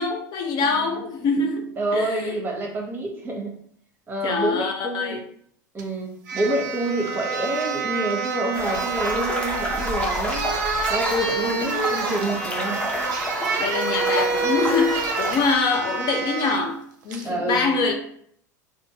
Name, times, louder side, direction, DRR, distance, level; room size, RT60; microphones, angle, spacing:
voice 1, 0.0-2.4 4.2-5.2 11.4-11.7 13.6-17.9, left 4 dB, 40° left, 0.4 m, -25 dB
voice 2, 0.6-0.9 1.8-3.5 4.1-5.2 5.7-10.5 10.9-12.9 17.2-17.6, right 1 dB, 20° right, 0.9 m, -27 dB
sound 1, 5.8-5.9 6.3-16.6 17.1-17.3, right 5 dB, 65° right, 0.5 m, -28 dB
sound 2, 8.5-15.6, left 1 dB, 15° left, 0.8 m, -29 dB
2.5 x 2.2 x 2.8 m
hypercardioid pair, 80°, 10 cm